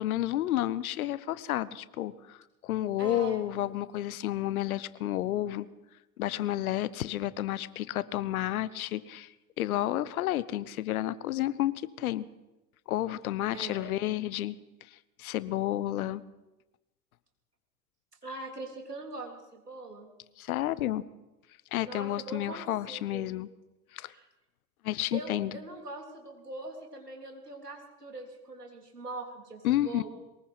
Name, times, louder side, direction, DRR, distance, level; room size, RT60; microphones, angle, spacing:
voice 1, 0.0-5.7 6.2-12.3 12.9-14.6 14.9-16.2 20.4-21.0 21.7-23.5 23.9-24.1 24.8-25.6 29.6-30.1, left 13 dB, 65° left, 18 dB, 1.0 m, -31 dB
voice 2, 3.0-3.5 13.5-13.9 18.2-20.1 21.8-23.3 24.1-24.3 25.1-30.1, right 2 dB, 90° right, 2 dB, 3.7 m, -42 dB
22.5 x 19.5 x 5.9 m, 1.1 s
figure-of-eight pair, 80°, 46 cm